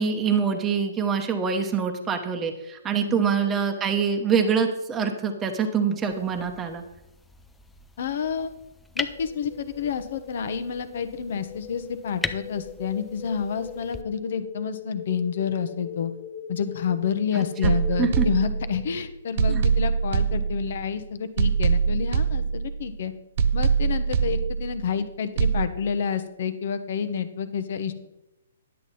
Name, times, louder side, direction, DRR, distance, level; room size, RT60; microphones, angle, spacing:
voice 1, 0.0-6.8 17.3-17.7 18.0-18.3 19.5-19.6, right 6 dB, 20° right, 5 dB, 1.0 m, -25 dB
sound 1, 6.0-14.0, left 3 dB, 5° left, 0.5 m, -40 dB
voice 2, 8.0-8.5 8.9-16.1 16.5-23.1 23.5-27.9, left 7 dB, 60° left, 11 dB, 0.9 m, -29 dB
sound 2, 9.1-19.0, left 6 dB, 30° left, 1.0 m, -41 dB
sound 3, 17.6-18.9 19.4-20.9 21.4-22.9 23.4-24.9 25.4-25.6, right 6 dB, 50° right, 0.6 m, -24 dB
10.5 x 7.7 x 4.2 m, 0.92 s
hypercardioid pair, 130°, 0 cm